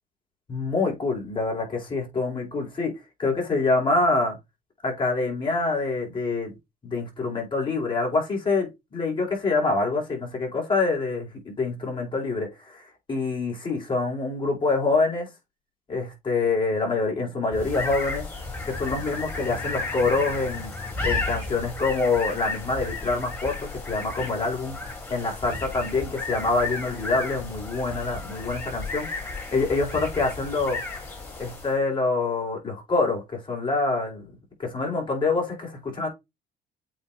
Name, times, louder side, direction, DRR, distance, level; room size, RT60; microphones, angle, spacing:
voice 1, 0.5-2.9 3.2-4.4 4.8-6.5 6.8-12.8 13.1-15.3 15.9-18.2 18.6-20.7 21.0-24.8 25.1-30.8 31.4-34.3 34.6-36.1, left 3 dB, 30° left, 4.7 m, -26 dB
sound 1, 17.5-31.8, left 3 dB, 15° left, 3.7 m, -33 dB
8.4 x 3.5 x 3.5 m
cardioid pair, 110°, 17 cm